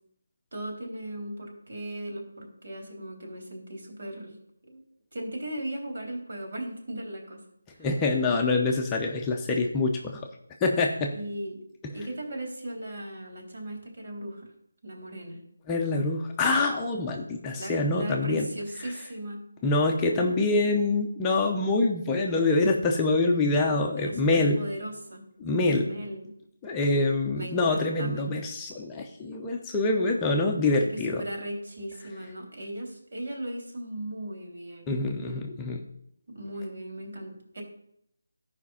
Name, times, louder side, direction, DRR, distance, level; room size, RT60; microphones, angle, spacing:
voice 1, 0.5-4.4 4.7-4.8 5.1-7.4 7.7-7.9 11.1-11.6 11.9-14.5 14.8-15.4 17.5-19.4 24.0-25.2 25.7-26.2 27.3-28.3 30.9-35.0 36.3-37.6, right 1 dB, 60° right, 1 dB, 3.5 m, -37 dB
voice 2, 7.8-10.2 10.6-11.1 11.8-11.9 15.7-18.5 19.6-24.6 25.4-25.9 26.6-31.2 34.9-35.8, left 2 dB, 10° left, 0 dB, 0.7 m, -25 dB
13.0 x 5.1 x 5.6 m, 0.72 s
figure-of-eight pair, 165°, 0 cm